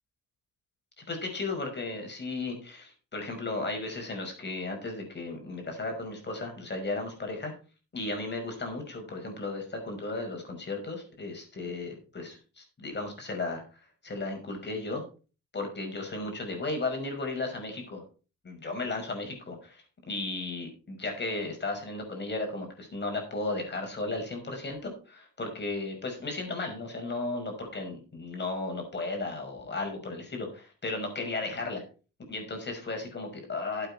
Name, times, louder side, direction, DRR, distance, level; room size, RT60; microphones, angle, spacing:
voice 1, 1.1-7.5 7.9-13.6 14.0-15.0 15.5-18.0 18.4-31.8 32.3-33.9, left 3 dB, 35° left, 3 dB, 5.6 m, -35 dB
12.0 x 8.4 x 4.2 m, 0.35 s
cardioid pair, 90°, 30 cm